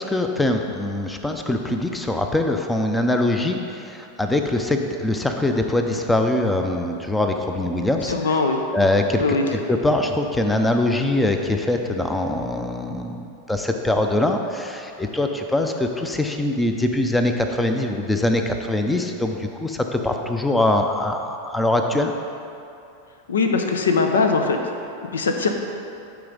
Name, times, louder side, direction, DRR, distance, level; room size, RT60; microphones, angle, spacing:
voice 1, 0.0-8.1 8.7-22.1, left 1 dB, 5° left, 4 dB, 0.6 m, -23 dB
voice 2, 8.1-8.6 9.1-9.5 23.3-24.6 25.1-25.5, left 4 dB, 70° left, 4 dB, 0.7 m, -21 dB
12.0 x 4.8 x 3.9 m, 2.7 s
figure-of-eight pair, 90°, 0 cm